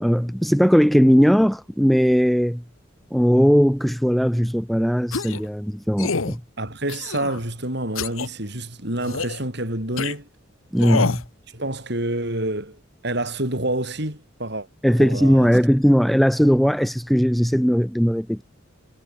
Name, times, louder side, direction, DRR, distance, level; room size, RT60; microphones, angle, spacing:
voice 1, 0.0-2.6 3.1-6.4 10.7-11.2 14.8-18.4, equal, ahead, 0.7 m, -18 dB
sound 1, 5.1-5.5 6.0-6.4 6.9-7.4 8.0-8.3 9.0-9.4 10.0-10.1 10.8-11.3, left 4 dB, 90° left, 1.2 m, -27 dB
voice 2, 6.6-10.3 11.5-12.8 13.0-15.5, right 1 dB, 55° right, 6.2 m, -28 dB
head